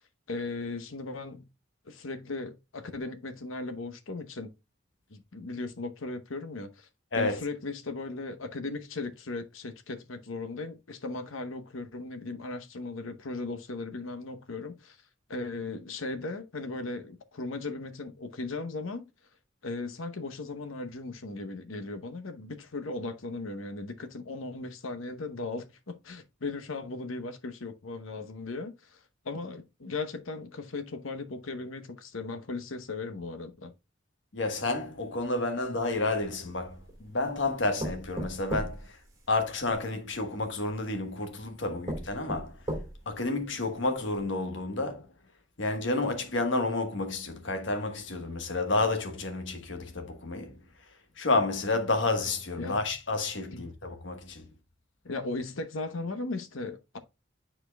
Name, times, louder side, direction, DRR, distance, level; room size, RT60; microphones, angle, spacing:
voice 1, 0.3-1.5 1.9-4.5 5.1-6.9 7.2-15.0 15.3-19.1 19.6-29.0 29.2-33.7 52.6-52.8 53.5-53.6 55.0-57.0, left 3 dB, 90° left, 0.9 m, -37 dB
voice 2, 34.3-38.8 39.3-42.5 43.1-45.1 45.6-50.6 51.2-54.4, left 2 dB, 70° left, 1.2 m, -30 dB
sound 1, 36.1-37.0 37.8-39.8 40.7-40.8 41.4-41.5 41.9-43.2 43.7-43.8 44.1-44.2, right 1 dB, 20° right, 2.1 m, -37 dB
10.0 x 4.4 x 2.2 m
head